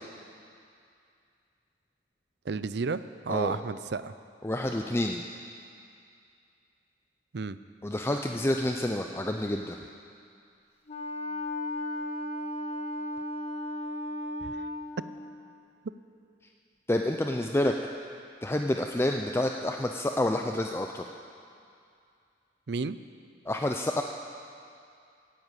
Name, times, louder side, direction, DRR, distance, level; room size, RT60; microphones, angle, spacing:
voice 1, 2.4-4.1 7.3-7.6 14.4-14.7 22.7-23.0, right 4 dB, 65° right, 13 dB, 0.5 m, -32 dB
voice 2, 4.4-5.2 7.8-9.8 16.9-17.7 18.4-21.0 23.5-24.0, left 1 dB, 15° left, 3 dB, 0.5 m, -28 dB
Wind instrument woodwind instrument, 10.9-15.1, left 1 dB, 35° left, 1.6 m, -35 dB
16.5 x 10.0 x 8.2 m, 2.4 s
head